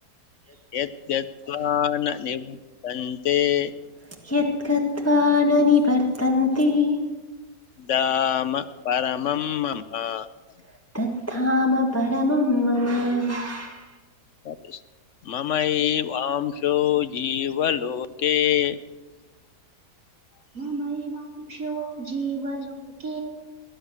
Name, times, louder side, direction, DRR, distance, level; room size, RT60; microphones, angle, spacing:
voice 1, 0.7-2.6 2.8-3.7 7.8-10.3 14.4-14.8 15.2-18.8, left 10 dB, 60° left, 13 dB, 0.8 m, -25 dB
voice 2, 4.2-7.0 10.9-13.8, left 3 dB, 10° left, 1 dB, 1.4 m, -21 dB
voice 3, 20.5-23.2, right 4 dB, 55° right, -1 dB, 3.6 m, -32 dB
19.0 x 10.5 x 6.2 m, 1.2 s
omnidirectional pair, 1.7 m